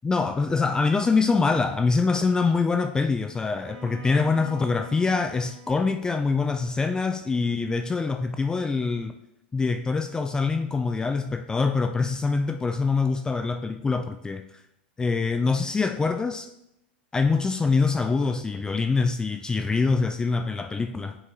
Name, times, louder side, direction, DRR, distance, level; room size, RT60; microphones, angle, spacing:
voice 1, 0.0-9.1 9.5-14.4 15.0-16.5 17.1-21.2, left 4 dB, 15° left, 8 dB, 0.3 m, -24 dB
Bowed string instrument, 3.5-7.5, right 1 dB, 40° right, 1.9 m, -46 dB
9.7 x 5.3 x 2.7 m, 0.85 s
hypercardioid pair, 95°, 6 cm